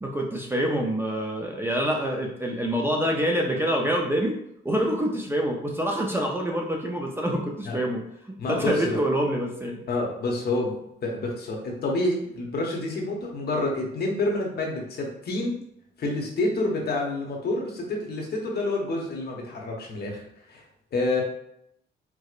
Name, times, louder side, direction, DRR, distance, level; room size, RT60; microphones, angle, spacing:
voice 1, 0.0-4.4 4.6-9.8, right 1 dB, 10° right, 0 dB, 0.5 m, -26 dB
voice 2, 8.4-9.0 9.9-10.7 11.0-15.6 16.0-20.2 20.5-20.6 20.9-21.2, left 2 dB, 55° left, 0 dB, 0.9 m, -28 dB
4.6 x 2.0 x 2.4 m, 0.75 s
cardioid pair, 90°, 20 cm